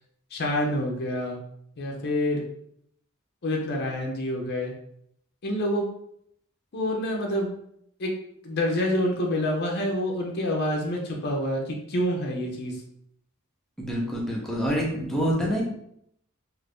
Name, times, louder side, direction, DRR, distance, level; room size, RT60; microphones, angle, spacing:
voice 1, 0.3-1.4 1.8-2.4 3.4-4.7 5.4-5.8 6.7-7.5 8.0-8.1 8.4-12.8, left 1 dB, 50° left, 0 dB, 0.5 m, -27 dB
voice 2, 13.8-15.6, equal, ahead, -4 dB, 0.7 m, -26 dB
2.5 x 2.5 x 3.4 m, 0.72 s
head